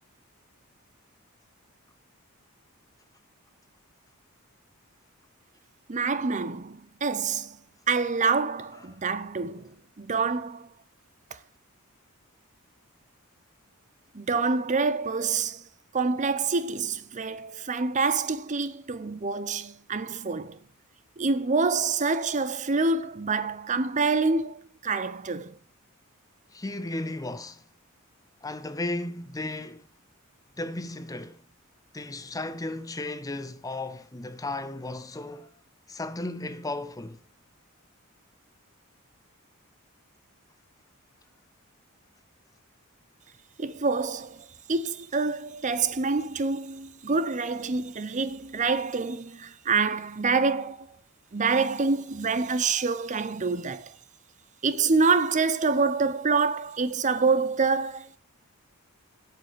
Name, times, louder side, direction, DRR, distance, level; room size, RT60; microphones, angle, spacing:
voice 1, 5.9-7.6 7.9-10.7 11.3-11.4 14.1-15.6 15.9-20.6 21.2-25.6 43.6-50.9 51.3-53.9 54.6-58.1, right 4 dB, 35° right, 0.6 m, -26 dB
voice 2, 26.5-27.6 28.4-29.9 30.6-31.4 31.9-35.5 35.9-37.2, left 2 dB, 15° left, 0.6 m, -35 dB
8.5 x 7.8 x 6.7 m
head